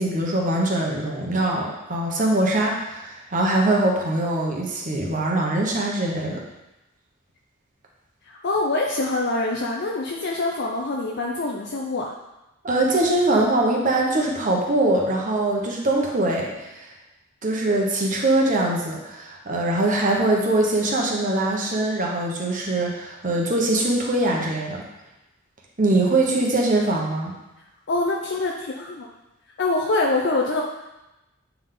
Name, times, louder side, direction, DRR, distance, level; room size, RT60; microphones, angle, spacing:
voice 1, 0.0-6.4 12.6-16.9 17.4-24.8 25.8-27.3, right 2 dB, 40° right, -1 dB, 1.1 m, -22 dB
voice 2, 8.3-12.1 27.9-29.1 29.6-30.6, left 2 dB, 55° left, -1 dB, 0.6 m, -25 dB
8.5 x 3.5 x 3.8 m, 0.97 s
head